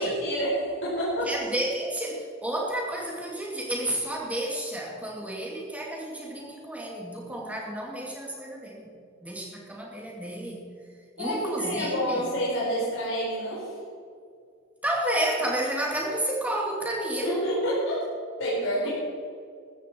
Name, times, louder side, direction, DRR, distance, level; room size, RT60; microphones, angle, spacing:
voice 1, 0.0-1.3 11.2-13.7 17.2-18.1 18.4-18.9, equal, 65° left, -7 dB, 4.4 m, -28 dB
voice 2, 1.2-8.9 9.2-10.7 11.2-12.2 14.8-17.4 18.8-18.9, right 1 dB, 5° right, -2 dB, 2.7 m, -31 dB
14.5 x 13.5 x 4.7 m, 2.2 s
head